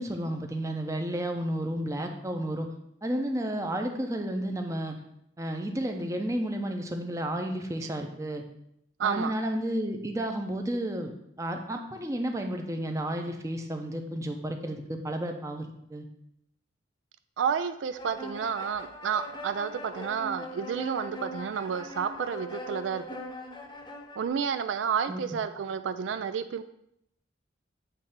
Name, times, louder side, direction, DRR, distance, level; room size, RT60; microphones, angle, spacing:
voice 1, 0.0-2.7 3.0-5.0 5.4-8.4 9.0-11.1 11.4-16.1 25.1-25.2, right 1 dB, 15° right, 4 dB, 0.7 m, -32 dB
voice 2, 9.0-9.3 17.4-23.0 24.2-26.7, right 7 dB, 70° right, 10 dB, 0.3 m, -30 dB
sound 1, 17.9-24.3, left 1 dB, 25° left, 0.8 m, -41 dB
8.1 x 3.2 x 5.7 m, 0.76 s
head